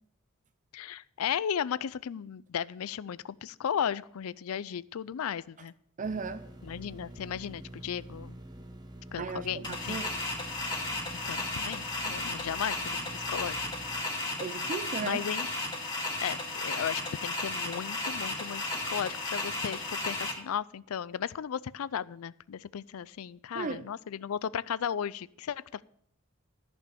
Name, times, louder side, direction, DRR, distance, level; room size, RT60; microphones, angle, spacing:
voice 1, 0.7-5.7 6.6-8.4 9.1-10.0 11.3-13.6 15.0-15.6 16.2-25.8, left 8 dB, 75° left, 20 dB, 0.4 m, -35 dB
sound 1, 6.0-14.0, right 1 dB, 20° right, 0.9 m, -47 dB
voice 2, 6.0-6.5 9.2-10.2 14.4-15.2 23.5-23.9, right 5 dB, 35° right, 12 dB, 0.5 m, -36 dB
sound 2, 9.6-20.3, left 2 dB, 20° left, 2.5 m, -34 dB
14.0 x 5.3 x 7.0 m, 0.67 s
head